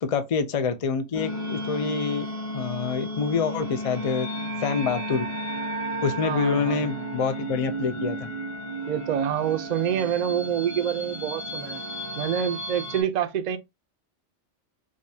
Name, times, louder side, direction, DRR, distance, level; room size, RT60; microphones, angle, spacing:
voice 1, 0.0-2.3 2.5-4.3 4.6-5.3 6.0-8.3, left 5 dB, 55° left, 0.4 m, -26 dB
sound 1, 1.1-13.0, right 1 dB, 15° left, 0.7 m, -33 dB
voice 2, 6.2-7.0 8.9-11.8 12.2-13.6, right 9 dB, 55° right, 0.5 m, -27 dB
4.9 x 2.2 x 2.7 m
omnidirectional pair, 1.2 m